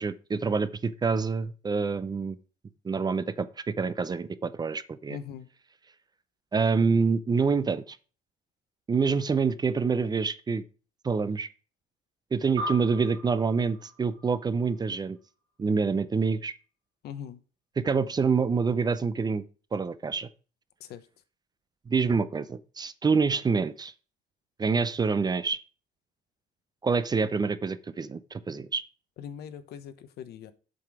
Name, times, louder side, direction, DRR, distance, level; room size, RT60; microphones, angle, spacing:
voice 1, 0.0-2.4 2.8-5.2 6.5-8.0 8.9-10.6 11.0-11.5 12.3-15.2 15.6-16.5 17.8-19.4 19.7-20.3 21.9-23.9 24.6-25.6 26.8-28.8, right 5 dB, 25° right, 0.6 m, -26 dB
voice 2, 5.1-5.5 17.0-17.4 20.9-21.0 29.2-30.5, left 8 dB, 75° left, 1.0 m, -40 dB
sound 1, 12.6-15.3, equal, 90° right, 2.1 m, -39 dB
7.7 x 5.8 x 4.8 m
cardioid pair, 110°, 17 cm